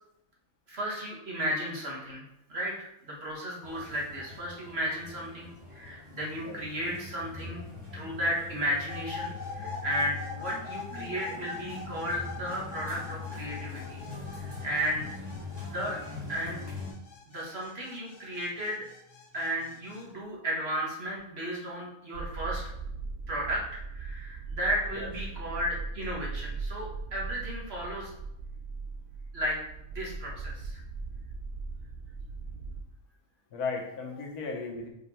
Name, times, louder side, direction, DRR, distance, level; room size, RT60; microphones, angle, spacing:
voice 1, 0.7-2.2 2.5-7.7 7.9-14.0 14.3-15.1 15.6-16.0 16.3-16.6 17.3-18.9 19.3-22.6 23.3-28.1 29.3-29.6 29.9-30.8, equal, 45° right, -3 dB, 1.6 m, -34 dB
sound 1, 3.6-16.9, left 4 dB, 15° right, 1.7 m, -42 dB
sound 2, 8.9-20.0, left 4 dB, 55° left, 1.1 m, -44 dB
sound 3, 22.1-32.8, right 4 dB, 70° right, 0.4 m, -39 dB
voice 2, 33.5-34.9, left 4 dB, 85° left, 1 dB, 1.6 m, -35 dB
5.1 x 4.3 x 4.2 m, 0.83 s
omnidirectional pair, 1.6 m